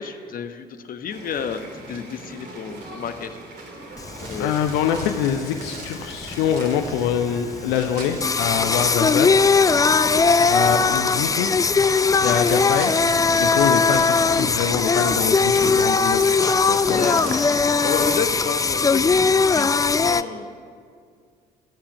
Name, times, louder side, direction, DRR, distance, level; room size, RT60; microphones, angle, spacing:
voice 1, 0.0-1.6 1.9-3.4 4.2-4.5 10.1-10.5 12.2-12.5 17.0-17.4 17.8-20.5, left 7 dB, 45° left, 8 dB, 1.1 m, -31 dB
sound 1, 1.1-19.0, right 2 dB, 50° right, 2.7 m, -39 dB
Singing, 4.0-20.2, left 4 dB, 15° left, 0.5 m, -20 dB
sound 2, 4.2-18.6, right 3 dB, 75° right, 1.9 m, -41 dB
voice 2, 4.4-9.7 10.5-11.5 12.2-12.9 13.4-16.2 16.7-17.0, left 8 dB, 65° left, 6 dB, 0.8 m, -24 dB
25.0 x 8.7 x 6.2 m, 2.2 s
figure-of-eight pair, 50°, 21 cm